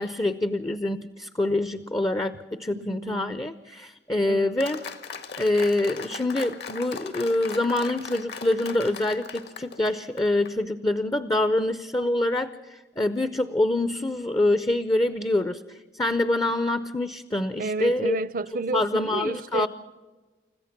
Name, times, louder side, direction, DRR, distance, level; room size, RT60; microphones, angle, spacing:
voice 1, 0.0-4.8 5.4-18.2 18.7-19.7, left 2 dB, 20° left, 0.6 m, -25 dB
voice 2, 2.7-3.5 4.3-4.5 17.6-19.7, right 3 dB, 50° right, 0.6 m, -31 dB
Applause, 4.6-10.5, left 4 dB, 65° left, 1.8 m, -39 dB
30.0 x 15.0 x 5.9 m
head